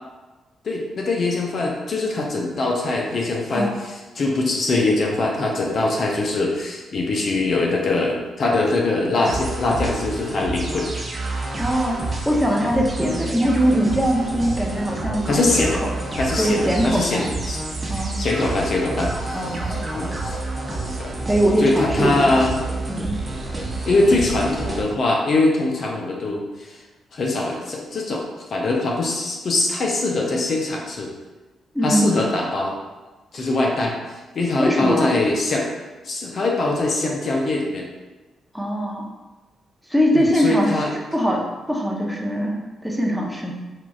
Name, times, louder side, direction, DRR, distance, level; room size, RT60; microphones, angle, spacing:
voice 1, 0.6-10.9 13.0-13.2 15.3-15.8 16.2-20.4 21.0-21.1 21.6-22.6 23.9-26.8 27.1-28.2 28.5-31.1 31.8-32.7 33.3-33.9 34.3-35.6 36.0-37.9 40.1-40.9, left 2 dB, 60° left, -1 dB, 0.6 m, -22 dB
sound 1, 9.2-24.8, right 2 dB, 30° right, 0.8 m, -29 dB
voice 2, 11.6-12.0 12.3-15.9 16.4-17.3 17.9-18.2 19.3-19.9 21.3-22.4 22.9-23.2 31.7-32.3 34.6-35.1 38.5-39.1 39.9-40.8 41.1-43.5, equal, ahead, -2 dB, 0.8 m, -22 dB
4.4 x 2.5 x 2.3 m, 1.2 s
supercardioid pair, 50°, 0 cm